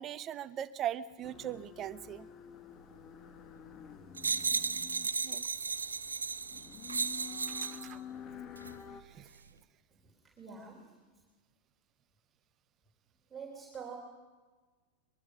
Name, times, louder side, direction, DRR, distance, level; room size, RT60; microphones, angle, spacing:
voice 1, 0.0-2.3 5.2-5.4 7.6-8.0 9.1-9.3, right 10 dB, 30° right, 15 dB, 0.9 m, -39 dB
sound 1, 1.2-9.0, left 8 dB, 30° left, 1.2 m, -50 dB
sound 2, 4.2-7.9 8.6-8.7, right 4 dB, 75° right, 0.8 m, -35 dB
voice 2, 9.9-11.0 13.3-14.0, right 6 dB, 10° right, -2 dB, 3.6 m, -47 dB
23.5 x 22.0 x 6.2 m, 1.4 s
figure-of-eight pair, 90°, 0 cm